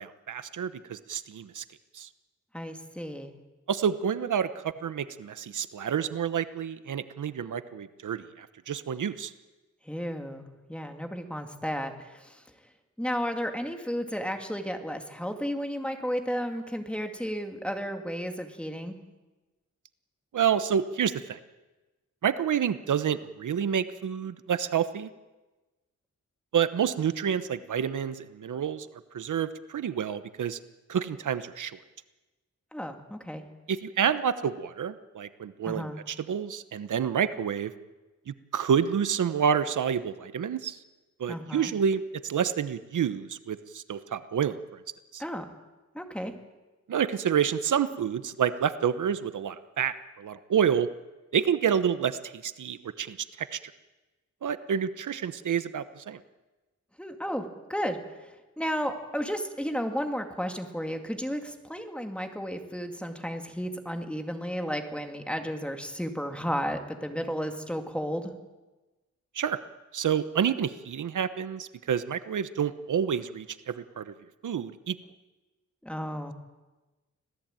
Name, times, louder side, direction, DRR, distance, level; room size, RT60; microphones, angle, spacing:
voice 1, 0.0-1.6 1.9-2.1 3.7-9.3 20.3-21.4 22.2-25.1 26.5-28.9 29.1-30.6 30.9-31.8 33.7-37.7 38.3-40.8 41.2-44.8 45.1-45.2 46.9-50.9 51.3-53.6 54.4-56.2 69.3-69.6 69.9-74.1 74.4-75.0, right 8 dB, 85° right, 13 dB, 1.0 m, -29 dB
voice 2, 2.5-3.3 9.8-12.4 13.0-19.0 32.7-33.4 35.7-36.0 41.3-41.7 45.2-45.5 45.9-46.3 57.0-58.3 58.6-68.3 75.8-76.3, equal, 5° left, 5 dB, 2.2 m, -33 dB
25.5 x 17.0 x 9.0 m, 1.2 s
wide cardioid pair, 160°, 30 cm